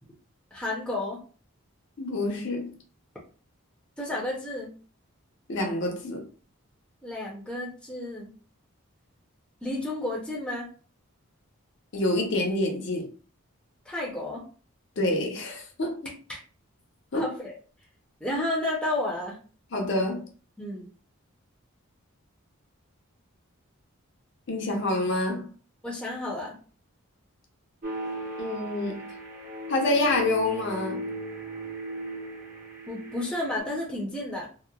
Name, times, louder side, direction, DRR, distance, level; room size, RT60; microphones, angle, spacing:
voice 1, 0.5-1.2 4.0-4.7 7.0-8.3 9.6-10.7 13.8-14.4 16.3-16.4 17.2-17.6 18.2-19.4 20.6-20.9 25.8-26.6 32.9-34.5, left 1 dB, 5° left, 0.5 m, -31 dB
voice 2, 2.0-2.7 5.5-6.2 11.9-13.1 15.0-16.1 17.1-17.3 19.7-20.3 24.5-25.5 28.4-29.1 29.7-31.1, left 2 dB, 55° left, 0.6 m, -27 dB
sound 1, 27.8-33.6, equal, 35° right, 0.6 m, -37 dB
2.9 x 2.1 x 2.3 m
head